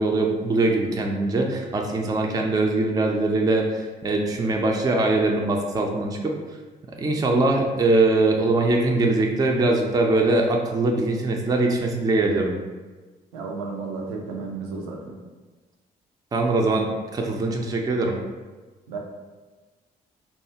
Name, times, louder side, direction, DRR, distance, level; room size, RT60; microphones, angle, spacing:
voice 1, 0.0-6.3 7.0-12.6 16.3-18.2, right 2 dB, 20° right, 1 dB, 0.4 m, -22 dB
voice 2, 13.3-15.2 18.9-19.0, right 4 dB, 75° right, 1 dB, 0.4 m, -33 dB
2.6 x 2.3 x 2.7 m, 1.3 s
figure-of-eight pair, 40°, 20 cm